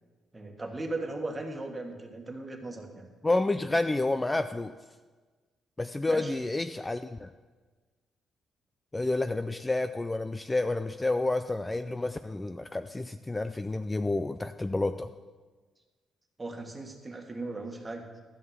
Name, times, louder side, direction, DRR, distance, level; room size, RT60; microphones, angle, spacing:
voice 1, 0.3-3.1 6.1-6.3 16.4-18.1, right 2 dB, 20° right, 4 dB, 1.6 m, -37 dB
voice 2, 3.2-4.7 5.8-7.3 8.9-15.1, left 2 dB, 15° left, 10 dB, 0.4 m, -29 dB
12.5 x 5.4 x 8.1 m, 1.4 s
cardioid pair, 90°, 0 cm